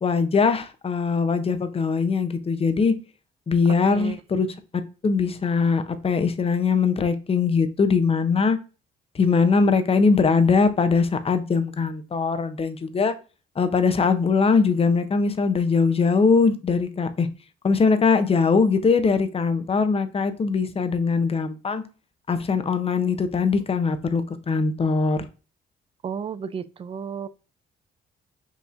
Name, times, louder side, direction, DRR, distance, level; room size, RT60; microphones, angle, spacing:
voice 1, 0.0-3.0 3.5-4.5 5.0-8.6 9.1-13.1 13.6-17.3 17.6-21.8 22.3-25.2, left 5 dB, 30° left, 0.6 m, -21 dB
voice 2, 3.9-4.2 26.0-27.3, right 7 dB, 30° right, 0.4 m, -32 dB
5.5 x 3.0 x 2.5 m
cardioid pair, 90°, 20 cm